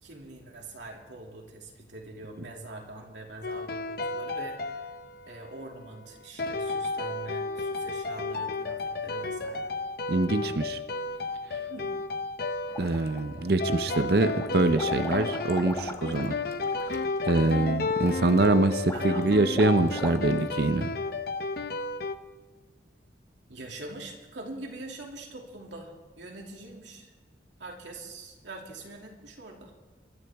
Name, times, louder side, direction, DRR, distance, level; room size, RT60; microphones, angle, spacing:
voice 1, 0.0-4.9 5.3-9.7 11.7-11.9 18.9-19.3 20.2-20.3 23.5-27.1 27.6-29.7, right 2 dB, 80° right, 0 dB, 2.6 m, -43 dB
sound 1, 3.4-5.6 6.4-22.1, left 3 dB, 55° left, 0.7 m, -33 dB
voice 2, 10.1-10.8 12.8-16.3 17.2-20.9, right 2 dB, 60° right, 10 dB, 0.7 m, -24 dB
sound 2, 12.7-13.5 13.9-20.6, left 1 dB, 15° left, 1.0 m, -40 dB
24.0 x 12.5 x 3.6 m, 1.3 s
head